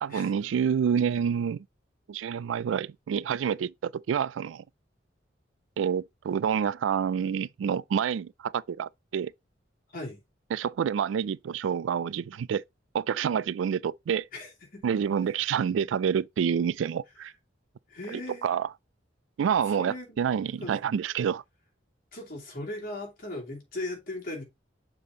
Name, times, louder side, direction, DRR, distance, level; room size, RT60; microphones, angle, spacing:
voice 1, 0.0-1.7 2.1-4.6 5.8-9.3 10.5-12.6 12.9-14.3 14.8-17.3 18.1-18.7 19.4-21.4, right 7 dB, 85° right, 0.3 m, -28 dB
voice 2, 14.3-14.8 17.9-18.5 19.7-20.2 20.5-20.8 22.1-24.4, left 2 dB, 50° left, 2.6 m, -38 dB
6.7 x 3.7 x 3.9 m
head